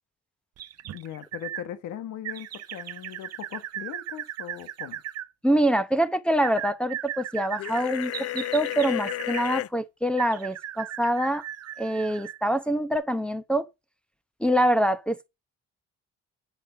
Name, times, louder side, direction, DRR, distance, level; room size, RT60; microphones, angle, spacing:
sound 1, 0.6-1.7 2.2-5.3 6.4-9.5 10.2-12.4 12.9-13.0, right 11 dB, 55° right, 0.7 m, -37 dB
voice 1, 0.9-5.0, left 10 dB, 85° left, 1.2 m, -39 dB
voice 2, 5.4-11.4 11.8-13.7 14.4-15.3, right 1 dB, 5° left, 0.8 m, -25 dB
sound 2, 7.6-9.7, left 15 dB, 50° left, 0.4 m, -32 dB
8.6 x 5.3 x 6.9 m
cardioid pair, 90°, 30 cm